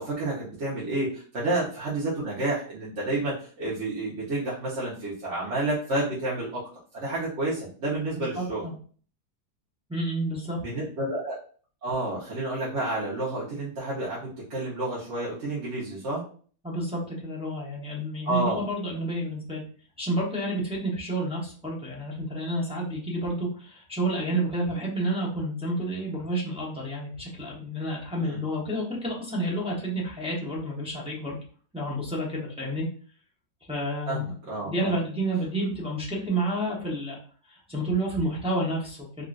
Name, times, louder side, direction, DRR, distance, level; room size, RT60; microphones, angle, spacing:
voice 1, 0.0-6.6 6.9-8.7 10.6-11.4 11.8-16.2 18.2-18.6 28.3-28.4 34.1-34.9, right 2 dB, 50° right, -7 dB, 1.2 m, -30 dB
voice 2, 8.2-8.7 9.9-10.6 16.6-19.6 20.0-31.4 31.7-32.9 33.6-34.3 34.7-37.2 37.5-39.2, right 1 dB, 5° right, -5 dB, 0.4 m, -30 dB
3.7 x 2.5 x 2.4 m, 0.43 s
omnidirectional pair, 1.7 m